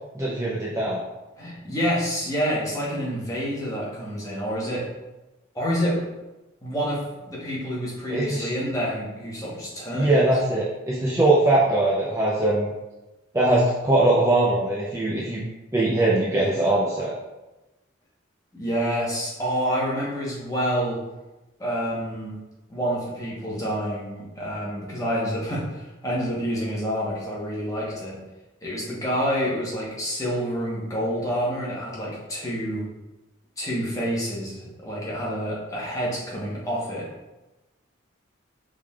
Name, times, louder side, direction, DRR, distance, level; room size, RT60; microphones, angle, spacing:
voice 1, 0.1-1.0 8.1-8.5 9.9-12.7 13.3-15.4 15.7-17.1, right 2 dB, 15° right, -6 dB, 0.4 m, -21 dB
voice 2, 1.4-4.8 5.5-6.0 6.6-7.0 7.3-10.1 18.5-21.0 21.6-22.4 22.7-28.2 28.6-32.8 33.6-37.1, equal, 15° left, -6 dB, 1.0 m, -28 dB
4.7 x 3.6 x 2.3 m, 1.1 s
head